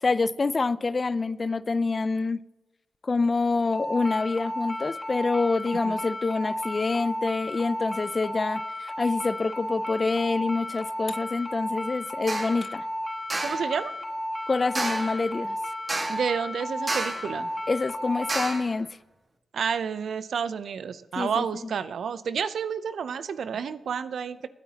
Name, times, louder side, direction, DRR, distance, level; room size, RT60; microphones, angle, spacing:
voice 1, 0.0-2.4 3.0-12.9 14.5-15.6 17.7-18.9 21.2-21.7, left 3 dB, 40° left, 0.4 m, -26 dB
sound 1, 3.7-18.5, left 1 dB, 20° left, 3.2 m, -33 dB
sound 2, 12.3-12.6 13.3-13.7 14.7-15.2 15.9-16.3 16.9-17.3 18.3-18.7, right 2 dB, 40° right, 1.7 m, -31 dB
voice 2, 13.4-13.9 16.1-17.5 19.5-24.5, right 7 dB, 70° right, 0.6 m, -30 dB
20.5 x 9.3 x 2.9 m
supercardioid pair, 45°, 0 cm